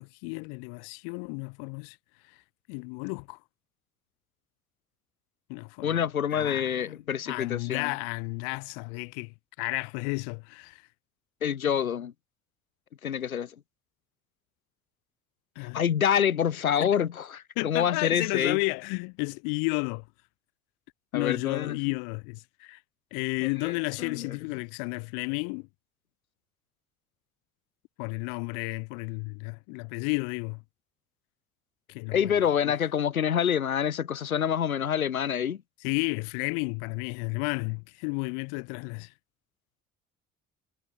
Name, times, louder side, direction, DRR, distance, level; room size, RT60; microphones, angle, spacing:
voice 1, 0.0-2.0 2.7-3.4 5.5-6.1 6.3-6.7 7.3-10.8 15.6-15.8 16.8-16.9 17.6-20.0 21.1-22.8 23.1-25.7 28.0-30.6 31.9-32.2 32.6-32.7 35.8-39.1, left 40 dB or more, 60° left, 1.8 m, -32 dB
voice 2, 5.8-7.9 11.4-12.1 13.0-13.5 15.6-18.6 21.1-21.8 23.4-24.4 32.1-35.6, left 8 dB, 85° left, 0.9 m, -27 dB
figure-of-eight pair, 50°, 41 cm